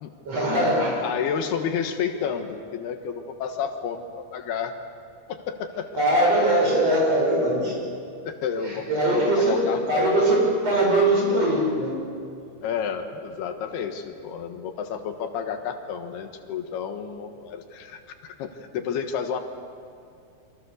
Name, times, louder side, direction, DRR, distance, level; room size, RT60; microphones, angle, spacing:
voice 1, 0.3-1.0 6.0-7.8 8.6-12.0, right 1 dB, 40° right, -1 dB, 6.9 m, -21 dB
voice 2, 1.0-4.8 5.3-5.9 8.2-8.9 9.1-10.1 12.6-19.4, left 7 dB, 85° left, 6 dB, 3.5 m, -31 dB
28.5 x 24.5 x 6.7 m, 2.5 s
omnidirectional pair, 4.5 m